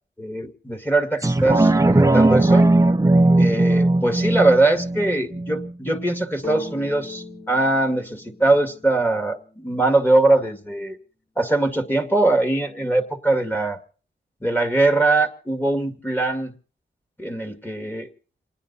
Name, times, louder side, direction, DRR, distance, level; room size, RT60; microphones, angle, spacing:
voice 1, 0.2-2.7 3.4-11.0 11.4-13.8 14.4-16.5 17.2-18.1, right 2 dB, 10° left, 6 dB, 2.1 m, -21 dB
sound 1, 1.2-6.2 6.7-6.8, right 2 dB, 15° right, 0.7 m, -18 dB
sound 2, 6.4-10.1, left 4 dB, 45° left, 3.0 m, -40 dB
29.0 x 10.0 x 4.1 m, 0.41 s
wide cardioid pair, 80°, 20 cm